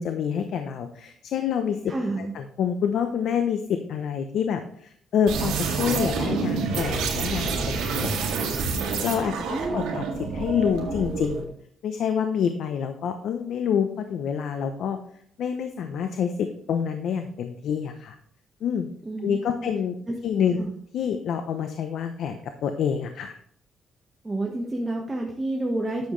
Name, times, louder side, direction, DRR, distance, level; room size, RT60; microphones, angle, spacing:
voice 1, 0.0-7.6 7.9-8.7 9.0-10.0 10.3-11.5 11.8-15.0 15.4-18.2 18.6-18.9 19.2-19.9 20.2-20.6 20.9-23.3, left 7 dB, 70° left, 7 dB, 0.7 m, -27 dB
voice 2, 1.9-2.3 9.5-10.0 19.0-19.7 20.1-20.2 20.6-20.8 24.2-26.1, right 2 dB, 20° right, -1 dB, 1.3 m, -29 dB
sound 1, 5.3-11.4, right 5 dB, 90° right, 2.0 m, -28 dB
10.5 x 7.3 x 3.2 m, 0.63 s
cardioid pair, 90°, 0 cm